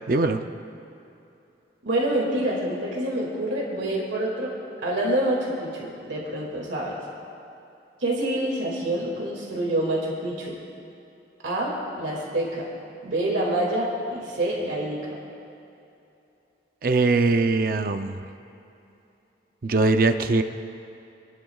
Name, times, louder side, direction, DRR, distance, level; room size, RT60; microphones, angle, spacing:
voice 1, 0.1-0.4 16.8-18.2 19.6-20.4, right 3 dB, 50° right, 8 dB, 0.5 m, -21 dB
voice 2, 1.8-4.5 4.8-6.9 8.0-10.6 11.4-12.7 13.0-15.2, right 1 dB, 90° right, -2 dB, 2.3 m, -27 dB
28.5 x 11.0 x 2.4 m, 2.8 s
head